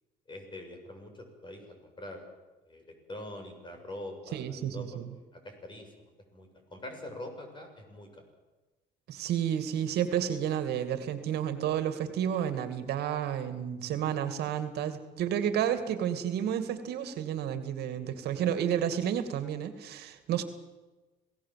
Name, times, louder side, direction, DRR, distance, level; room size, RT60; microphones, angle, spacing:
voice 1, 0.3-2.2 2.6-8.2, left 1 dB, 30° left, 4 dB, 6.7 m, -44 dB
voice 2, 4.3-5.1 9.1-20.4, right 9 dB, 75° right, 10 dB, 2.4 m, -31 dB
27.0 x 18.0 x 7.6 m, 1.2 s
cardioid pair, 110°, 17 cm